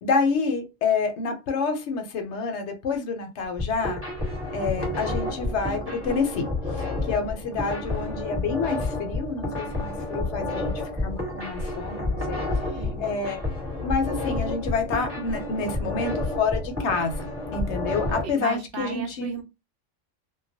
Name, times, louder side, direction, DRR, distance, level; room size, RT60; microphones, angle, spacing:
voice 1, 0.0-4.0 4.5-6.5 6.7-12.4 13.0-13.4 13.8-19.3, left 4 dB, 70° left, 0.8 m, -28 dB
sound 1, 3.4-18.2, left 2 dB, 10° right, 1.0 m, -30 dB
voice 2, 12.8-13.1 18.1-19.4, right 4 dB, 70° right, 0.9 m, -35 dB
2.2 x 2.1 x 2.5 m
omnidirectional pair, 1.3 m